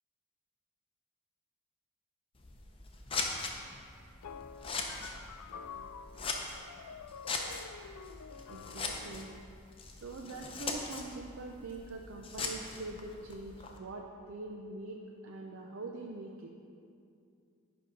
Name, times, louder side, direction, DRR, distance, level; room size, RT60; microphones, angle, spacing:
Scissors, 2.3-13.8, left 4 dB, 25° left, 0.7 m, -41 dB
sound 1, 4.2-9.4, left 6 dB, 90° left, 0.4 m, -48 dB
voice 1, 8.5-9.3 9.9-15.0 15.2-16.5, right 2 dB, 60° right, 1 dB, 0.5 m, -44 dB
10.0 x 5.4 x 5.1 m, 2.4 s
head